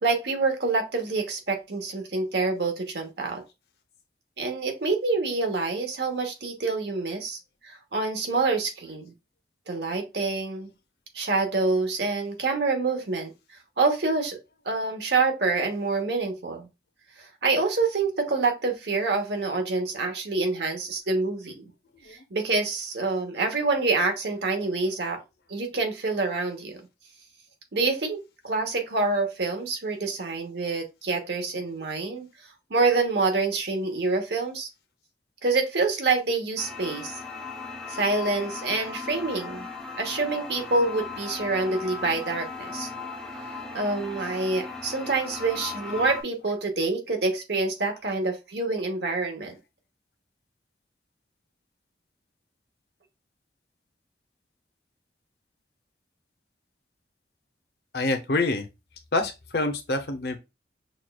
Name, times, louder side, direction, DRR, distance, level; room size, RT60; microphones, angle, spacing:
voice 1, 0.0-3.4 4.4-9.1 9.7-10.7 11.1-13.3 13.8-14.4 14.6-16.7 17.2-21.7 22.1-25.2 25.5-26.8 27.7-32.3 32.7-34.7 35.4-37.2 37.9-39.7 40.0-42.9 43.7-49.5, right 3 dB, 70° right, 0.9 m, -27 dB
sound 1, 36.6-46.2, left 4 dB, 5° left, 0.4 m, -37 dB
voice 2, 57.9-58.7 59.1-60.4, left 2 dB, 60° left, 0.6 m, -26 dB
6.0 x 2.3 x 2.3 m
head